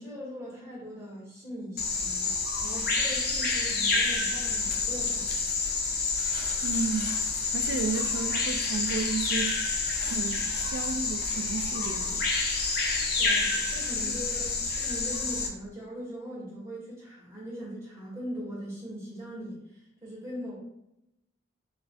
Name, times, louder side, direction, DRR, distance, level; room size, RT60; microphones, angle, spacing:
voice 1, 0.0-2.3 2.6-5.5 13.2-20.6, equal, 15° right, -6 dB, 1.3 m, -40 dB
Bird vocalization bird call bird song, 1.8-15.5, left 4 dB, 50° left, 0.7 m, -28 dB
voice 2, 6.6-7.2 7.5-9.7 10.0-12.3, right 4 dB, 75° right, 9 dB, 0.3 m, -33 dB
5.7 x 2.5 x 2.3 m, 0.82 s
head